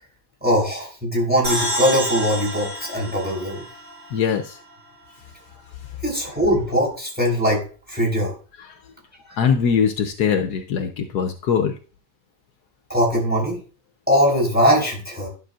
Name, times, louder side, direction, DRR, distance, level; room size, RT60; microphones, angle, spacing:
voice 1, 0.4-3.6 6.0-8.3 12.9-13.6 14.1-15.3, equal, 5° right, -2 dB, 4.6 m, -21 dB
sound 1, 1.4-4.8, equal, 45° right, 4.4 m, -29 dB
voice 2, 4.1-4.6 8.6-8.7 9.4-11.7, left 7 dB, 75° left, 6 dB, 1.2 m, -21 dB
11.5 x 6.2 x 2.5 m, 0.37 s
omnidirectional pair, 1.8 m